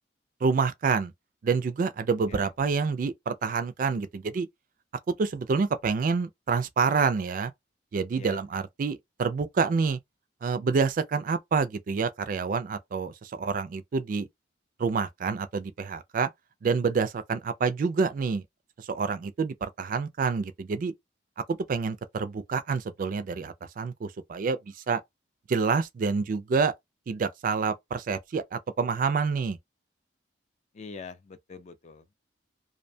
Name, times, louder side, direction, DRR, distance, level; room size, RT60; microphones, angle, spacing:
voice 1, 0.4-1.1 1.4-4.5 5.1-7.5 7.9-10.0 10.4-14.3 14.8-16.3 16.6-18.4 18.8-20.9 21.4-25.0 25.5-26.7 27.1-29.6, right 5 dB, 45° right, 0.3 m, -27 dB
voice 2, 30.7-32.1, left 4 dB, 40° left, 0.3 m, -44 dB
2.6 x 2.1 x 2.6 m
head